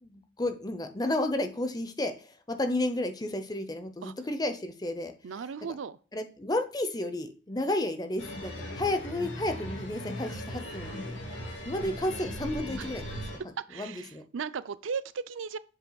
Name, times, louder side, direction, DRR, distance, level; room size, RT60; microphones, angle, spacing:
voice 1, 0.0-2.1 2.5-5.1 6.1-11.2 11.7-13.4 13.7-14.2, left 1 dB, 20° left, 0.7 m, -32 dB
voice 2, 5.2-6.0 12.8-12.9 13.7-15.6, right 6 dB, 85° right, 0.5 m, -36 dB
sound 1, 8.2-13.4, equal, 75° left, 2.7 m, -38 dB
7.7 x 6.1 x 2.3 m
head